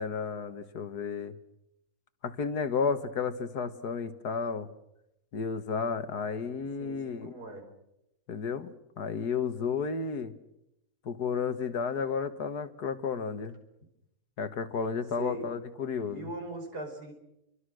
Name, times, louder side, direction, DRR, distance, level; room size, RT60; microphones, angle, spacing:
voice 1, 0.0-1.3 2.2-4.7 5.3-7.3 8.3-10.3 11.1-13.6 14.4-16.3, left 5 dB, 80° left, 10 dB, 2.1 m, -32 dB
voice 2, 6.8-7.7 15.2-15.5 16.1-17.1, right 2 dB, 75° right, 4 dB, 5.9 m, -40 dB
29.0 x 23.0 x 6.4 m, 0.84 s
omnidirectional pair, 1.7 m